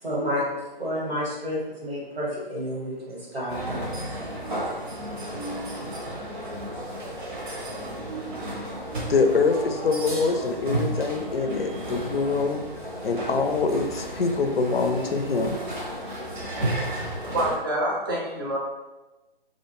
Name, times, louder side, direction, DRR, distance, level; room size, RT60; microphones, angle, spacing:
voice 1, 0.0-4.0, equal, 80° right, -5 dB, 1.3 m, -30 dB
sound 1, 3.5-17.6, right 1 dB, 55° right, 0.8 m, -33 dB
voice 2, 9.1-12.6 13.0-15.6, left 4 dB, 80° left, 6 dB, 0.5 m, -24 dB
voice 3, 17.0-18.6, right 1 dB, 25° right, -3 dB, 0.4 m, -27 dB
2.4 x 2.1 x 3.0 m, 1.1 s
figure-of-eight pair, 135°, 29 cm